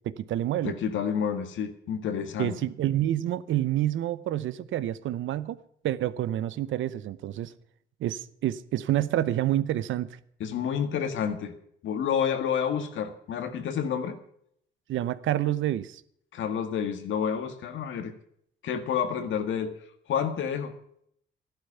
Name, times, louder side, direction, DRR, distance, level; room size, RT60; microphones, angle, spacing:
voice 1, 0.0-0.7 2.4-5.6 5.8-7.5 8.0-10.2 14.9-16.0, right 13 dB, 75° right, 0.8 m, -28 dB
voice 2, 0.6-2.5 10.4-11.5 11.8-14.2 16.3-18.1 18.6-19.7 20.1-20.7, left 8 dB, 75° left, 1.8 m, -29 dB
13.0 x 12.0 x 5.7 m
cardioid pair, 90°, 20 cm